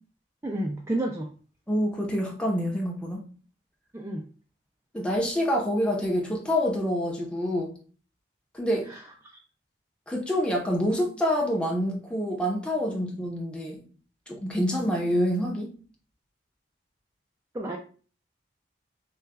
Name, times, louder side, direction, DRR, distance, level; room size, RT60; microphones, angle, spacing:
voice 1, 0.4-1.3 3.9-4.2 8.8-9.4 12.9-13.0 17.5-17.8, right 1 dB, 15° right, 0.3 m, -31 dB
voice 2, 1.7-3.3 4.9-7.8 8.5-8.9 10.1-13.8 14.3-15.7, equal, 5° left, 0.8 m, -27 dB
6.4 x 2.3 x 2.2 m
head